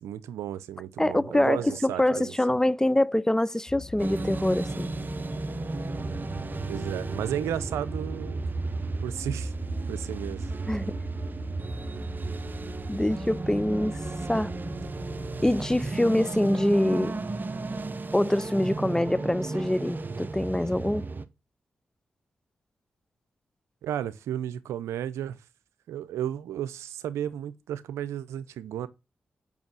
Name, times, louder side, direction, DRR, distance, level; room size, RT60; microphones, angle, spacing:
voice 1, 0.0-2.3 6.6-8.4 8.8-9.5 9.9-10.5 23.8-25.4 25.9-28.9, right 10 dB, 85° right, 0.6 m, -33 dB
voice 2, 1.0-4.9 10.7-10.9 12.9-14.0 14.3-14.5 15.4-17.1 18.1-21.1, left 1 dB, 10° left, 0.5 m, -25 dB
sound 1, 3.7-15.9, left 4 dB, 60° left, 2.9 m, -42 dB
sound 2, 4.0-21.2, right 3 dB, 45° right, 0.9 m, -34 dB
7.2 x 5.6 x 6.1 m
supercardioid pair, 40°, 5 cm